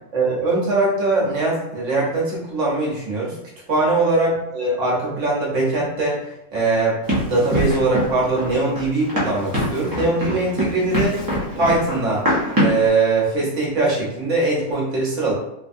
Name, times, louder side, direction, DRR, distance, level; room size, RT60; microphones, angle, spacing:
voice 1, 0.1-3.3 3.7-6.2 6.5-7.0 7.3-11.2 11.6-12.2 12.5-15.3, right 2 dB, 60° right, -5 dB, 1.3 m, -21 dB
Run, 7.1-12.9, equal, 20° right, 0.6 m, -24 dB
3.2 x 2.2 x 2.6 m, 0.83 s
omnidirectional pair, 1.5 m